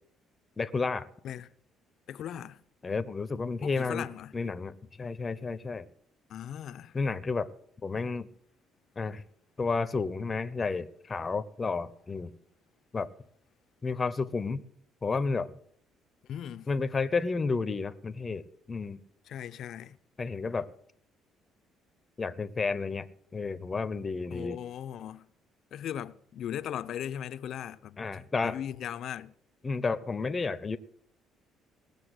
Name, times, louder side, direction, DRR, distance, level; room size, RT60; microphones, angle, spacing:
voice 1, 0.6-1.1 2.8-4.0 4.3-5.9 6.9-7.5 7.8-8.3 9.0-9.2 9.6-12.3 12.9-13.1 13.8-14.6 15.0-15.5 16.7-19.0 20.2-20.7 22.2-23.1 23.3-24.6 28.0-28.6 29.6-30.8, left 4 dB, 25° left, 0.9 m, -31 dB
voice 2, 2.1-2.6 3.6-4.3 6.3-7.0 16.2-16.7 19.2-20.0 24.3-25.3 25.7-29.3, left 10 dB, 60° left, 0.7 m, -38 dB
18.5 x 6.9 x 8.1 m
cardioid pair, 115°, 0 cm